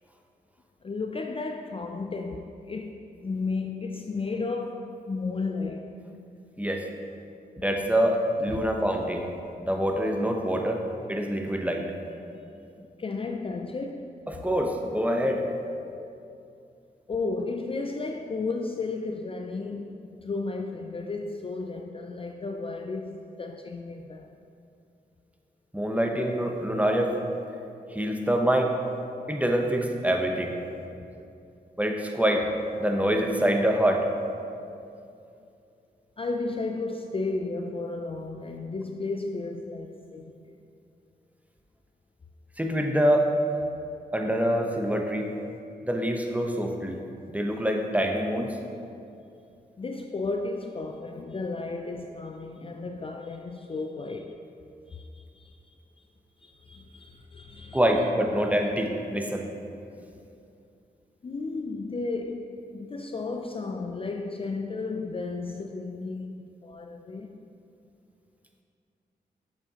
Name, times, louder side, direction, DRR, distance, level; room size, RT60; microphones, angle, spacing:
voice 1, 0.8-5.9 8.5-8.7 12.8-14.1 17.1-24.3 29.1-29.2 34.4-34.5 36.2-40.6 43.7-43.8 45.0-45.1 47.5-47.6 49.8-54.4 54.9-56.0 56.4-57.8 58.4-58.5 61.2-67.5, left 3 dB, 30° left, 0.4 m, -34 dB
voice 2, 7.6-9.2 9.6-10.8 11.1-11.8 14.3-15.4 25.7-27.1 27.9-28.7 29.3-30.5 31.8-32.5 32.8-34.0 42.6-43.3 44.1-45.3 45.8-47.0 47.3-48.6 57.7-59.4, equal, 10° right, 0.8 m, -25 dB
7.0 x 5.4 x 2.8 m
cardioid pair, 40°, 17 cm